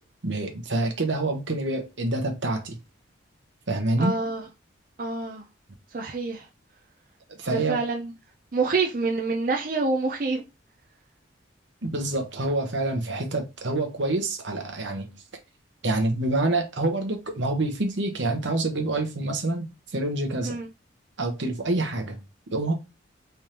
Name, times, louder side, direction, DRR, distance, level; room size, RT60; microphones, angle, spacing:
voice 1, 0.2-2.8 3.7-4.2 7.4-7.8 11.8-15.2 15.8-19.7 19.9-20.6 21.2-22.2 22.5-22.7, right 2 dB, 70° right, 1.0 m, -27 dB
voice 2, 4.0-4.4 5.0-5.4 5.9-6.4 7.5-8.1 8.5-10.4 20.4-20.7, right 3 dB, 45° right, 0.5 m, -27 dB
3.5 x 3.3 x 2.9 m
head